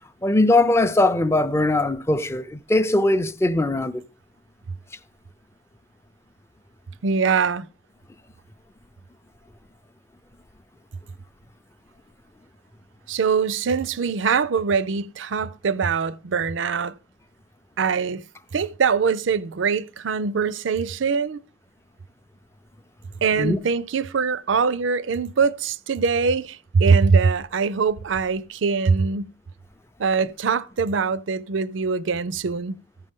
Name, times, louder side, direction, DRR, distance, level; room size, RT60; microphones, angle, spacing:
voice 1, 0.2-4.0 23.4-23.6, left 2 dB, 15° left, 0.4 m, -20 dB
voice 2, 7.0-7.7 13.1-16.9 17.8-18.2 18.5-21.4 23.2-29.3 30.0-32.8, right 5 dB, 90° right, 0.5 m, -22 dB
14.5 x 5.3 x 3.6 m
head